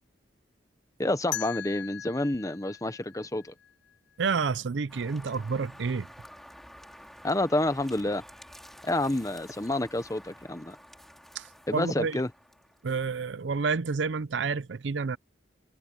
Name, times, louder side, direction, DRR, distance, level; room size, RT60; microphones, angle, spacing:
voice 1, 1.0-3.5 7.2-8.2 8.8-10.8 11.7-12.3, left 1 dB, 15° left, 1.0 m, -29 dB
sound 1, 1.3-4.2, left 12 dB, 65° left, 0.8 m, -40 dB
voice 2, 4.2-6.1 11.4-12.2 12.8-15.2, right 5 dB, 65° right, 0.5 m, -29 dB
sound 2, 4.9-13.0, equal, ahead, 2.3 m, -50 dB
head